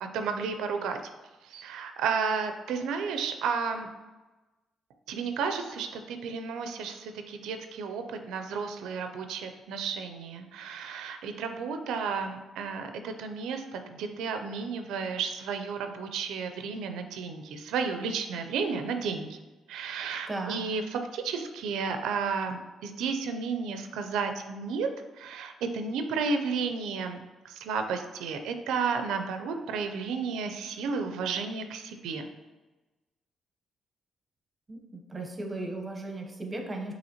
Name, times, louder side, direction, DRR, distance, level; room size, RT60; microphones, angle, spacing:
voice 1, 0.0-1.0 1.4-3.9 5.1-19.4 19.7-24.9 25.2-27.2 27.4-32.3, right 5 dB, 85° right, 6 dB, 0.4 m, -32 dB
voice 2, 20.3-20.6 34.7-36.9, right 2 dB, 25° right, 2 dB, 0.8 m, -36 dB
5.5 x 2.9 x 2.8 m, 1.2 s
cardioid pair, 90°, 0 cm